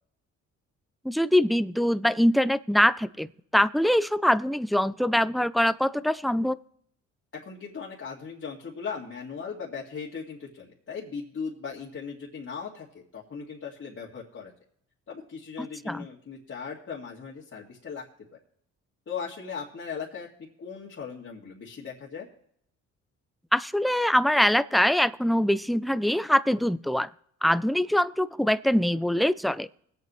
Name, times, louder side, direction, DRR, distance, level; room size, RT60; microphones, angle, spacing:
voice 1, 1.0-6.6 15.9-16.0 23.5-27.1 27.4-29.7, equal, ahead, 16 dB, 0.4 m, -23 dB
voice 2, 7.3-14.5 15.1-18.0 19.1-20.3 20.6-22.3, left 6 dB, 45° left, -5 dB, 2.2 m, -38 dB
21.5 x 8.3 x 3.1 m, 0.68 s
cardioid pair, 90°, 30 cm